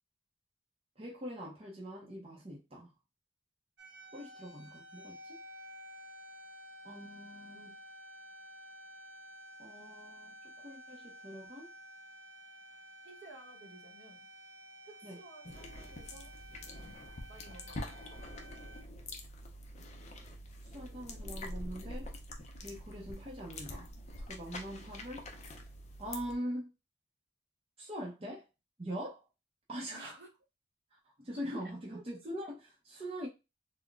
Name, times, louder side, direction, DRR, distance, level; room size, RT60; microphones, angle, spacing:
voice 1, 1.0-2.9 4.1-5.4 6.8-7.7 9.6-11.7 15.0-15.2 20.7-22.1 22.6-23.9 24.3-25.2 26.0-26.7 27.8-28.5 28.8-29.2 29.7-30.2 30.9-33.3, equal, 30° right, 0.6 m, -43 dB
sound 1, 3.8-18.8, equal, 80° right, 0.6 m, -52 dB
voice 2, 13.0-14.2 14.8-16.3 17.3-18.2 24.5-24.6 29.9-30.3 31.9-32.0, right 2 dB, 60° right, 0.9 m, -54 dB
sound 2, 15.4-26.4, left 1 dB, 35° left, 0.5 m, -45 dB
3.8 x 2.1 x 2.3 m
head